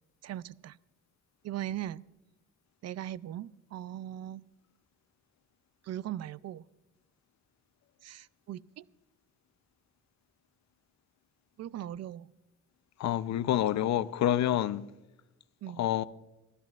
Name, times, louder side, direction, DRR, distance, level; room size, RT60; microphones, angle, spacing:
voice 1, 0.2-0.8 1.4-2.0 2.8-4.4 5.8-6.6 8.0-8.8 11.6-12.3 15.6-15.8, right 12 dB, 60° right, 0.4 m, -39 dB
voice 2, 13.0-14.8 15.8-16.0, left 12 dB, 65° left, 0.7 m, -27 dB
23.0 x 15.5 x 2.4 m
cardioid pair, 90°, 30 cm